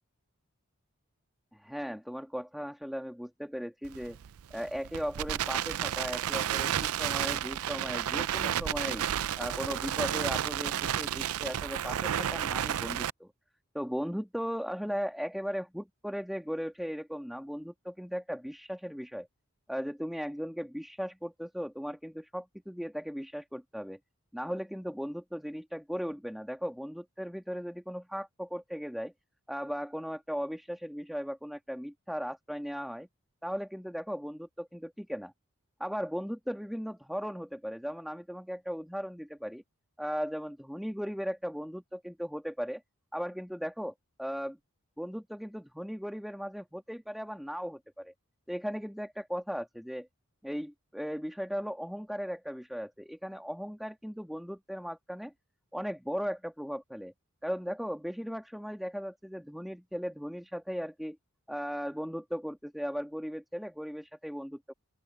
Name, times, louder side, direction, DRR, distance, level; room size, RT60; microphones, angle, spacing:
voice 1, 1.5-4.2 4.5-9.0 9.4-13.3 13.7-19.3 19.7-24.0 24.3-29.1 29.5-33.1 33.4-35.3 35.8-39.6 40.0-42.8 43.1-44.6 45.0-48.1 48.5-50.1 50.4-55.3 55.7-57.1 57.4-61.2 61.5-64.7, equal, ahead, 2.4 m, -37 dB
Crackle, 3.8-13.1, right 10 dB, 80° right, 0.4 m, -32 dB
open air
head